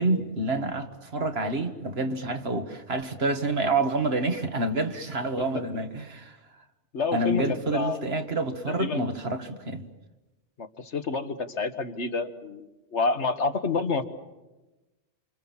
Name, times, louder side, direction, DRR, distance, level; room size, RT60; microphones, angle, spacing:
voice 1, 0.0-6.4 7.1-9.8, right 2 dB, 60° right, 2.0 m, -28 dB
voice 2, 6.9-8.0 8.7-9.0 10.6-12.7 12.9-14.0, left 4 dB, 80° left, 1.8 m, -28 dB
28.5 x 27.0 x 7.3 m
omnidirectional pair, 1.2 m